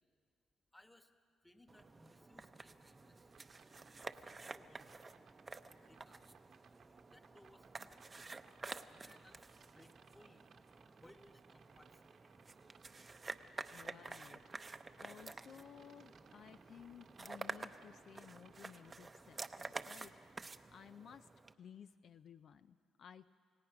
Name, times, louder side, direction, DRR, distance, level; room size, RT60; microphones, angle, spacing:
voice 1, 0.7-1.1 1.4-3.3 4.0-5.1 5.8-6.4 7.1-8.1 8.7-12.4, left 1 dB, 10° left, 7 dB, 1.4 m, -66 dB
sound 1, 1.7-21.5, right 3 dB, 25° right, 0.7 m, -51 dB
sound 2, 3.3-19.1, right 6 dB, 60° right, 1.1 m, -67 dB
voice 2, 13.7-14.4 15.0-21.3 21.6-23.3, left 8 dB, 65° left, 11 dB, 0.5 m, -57 dB
28.5 x 17.5 x 5.9 m, 2.1 s
cardioid pair, 90°, 0 cm